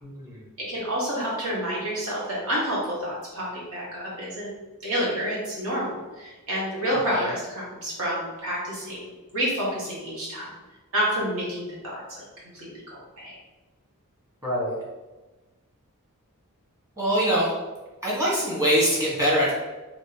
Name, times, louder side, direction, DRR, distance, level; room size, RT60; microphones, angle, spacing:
voice 1, 0.0-0.4 7.1-7.3 14.4-14.8 17.0-17.5 18.0-19.5, equal, 15° right, -8 dB, 1.3 m, -23 dB
voice 2, 0.7-4.5 4.8-10.5 10.9-12.0 12.5-13.4, equal, 65° right, -6 dB, 1.3 m, -29 dB
3.0 x 2.6 x 3.2 m, 1.2 s
head